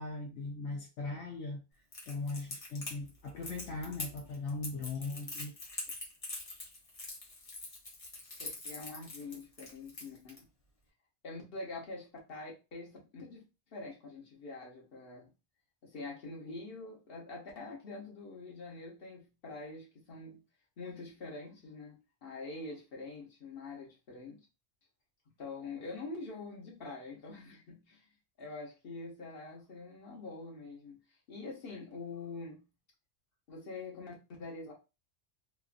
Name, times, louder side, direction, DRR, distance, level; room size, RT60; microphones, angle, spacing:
voice 1, 0.0-1.6 2.1-5.5, left 3 dB, 80° left, 0.9 m, -39 dB
Crackle, 1.9-10.4, left 2 dB, 35° left, 0.9 m, -43 dB
voice 2, 8.4-10.4 11.2-13.4 13.7-15.3 15.8-20.4 20.8-24.5 25.4-28.1 28.4-31.0 31.3-32.7 33.5-34.1 34.4-34.7, left 3 dB, 55° left, 1.2 m, -45 dB
3.0 x 2.4 x 2.4 m
omnidirectional pair, 1.2 m